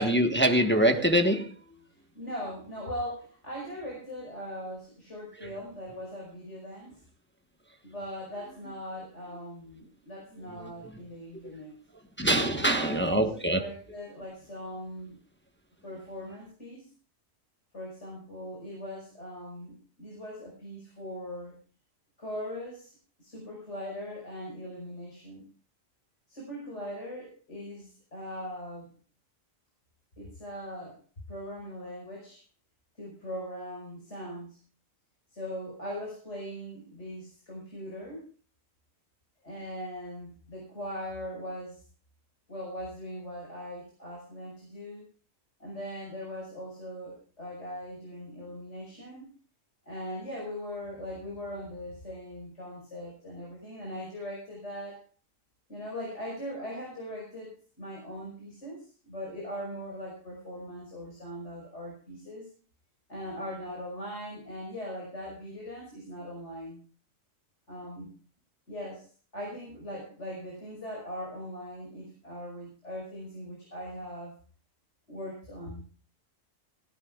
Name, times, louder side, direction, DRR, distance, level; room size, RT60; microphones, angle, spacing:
voice 1, 0.0-1.5 5.4-5.5 10.6-10.7 12.2-13.6, right 1 dB, 10° left, 5 dB, 1.2 m, -24 dB
voice 2, 1.9-7.0 7.8-11.8 12.5-15.2 15.8-16.9 17.7-21.6 22.2-25.4 26.3-28.9 30.2-31.0 31.3-32.4 33.0-34.6 35.3-38.3 39.4-41.8 42.5-45.1 45.6-49.3 49.9-55.0 55.7-62.5 63.1-66.8 67.7-68.2 68.7-74.4 75.1-75.8, equal, 55° left, -2 dB, 5.6 m, -40 dB
18.0 x 17.0 x 2.4 m, 0.38 s
omnidirectional pair, 1.4 m